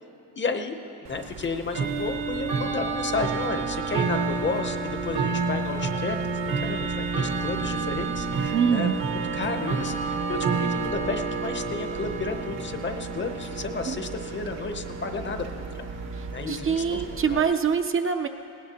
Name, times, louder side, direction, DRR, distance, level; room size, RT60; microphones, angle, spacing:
voice 1, 0.4-8.9 9.3-15.9 16.3-17.0 17.3-17.4, left 4 dB, 30° left, 7 dB, 0.7 m, -32 dB
Bell / Tick-tock, 1.0-17.4, right 4 dB, 65° right, 1.2 m, -30 dB
voice 2, 8.5-9.0 13.9-14.0 16.1-18.3, right 6 dB, 35° right, 6 dB, 0.5 m, -25 dB
20.0 x 17.0 x 2.9 m, 2.8 s
cardioid pair, 125°, 36 cm